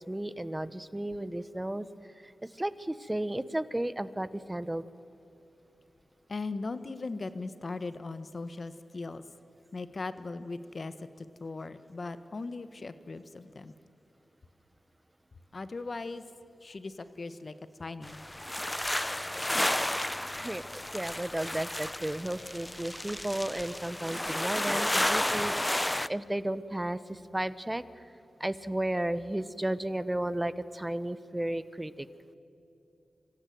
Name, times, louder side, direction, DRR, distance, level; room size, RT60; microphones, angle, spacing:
voice 1, 0.0-1.9 2.2-2.3 2.6-4.9 20.3-20.6 20.9-28.0 28.4-32.1, right 1 dB, 20° right, 15 dB, 1.0 m, -34 dB
voice 2, 6.3-9.2 9.7-13.7 15.5-16.2 16.6-17.5 17.8-18.3, left 3 dB, 55° left, 12 dB, 1.3 m, -39 dB
sound 1, 18.0-26.1, left 1 dB, 15° left, 0.6 m, -32 dB
25.0 x 15.5 x 9.4 m, 2.9 s
cardioid pair, 45°, 0 cm